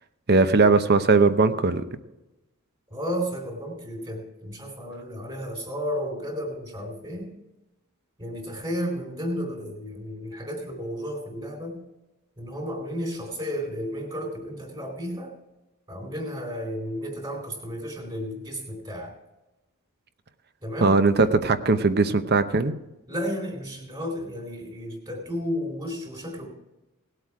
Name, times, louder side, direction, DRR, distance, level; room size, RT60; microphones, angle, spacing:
voice 1, 0.3-1.8 20.8-22.7, right 3 dB, 45° right, 11 dB, 0.8 m, -19 dB
voice 2, 2.9-7.3 8.2-11.8 12.4-15.3 15.9-19.1 20.6-21.0 23.1-26.5, equal, 25° right, -1 dB, 3.7 m, -33 dB
18.5 x 7.9 x 4.8 m, 1.0 s
head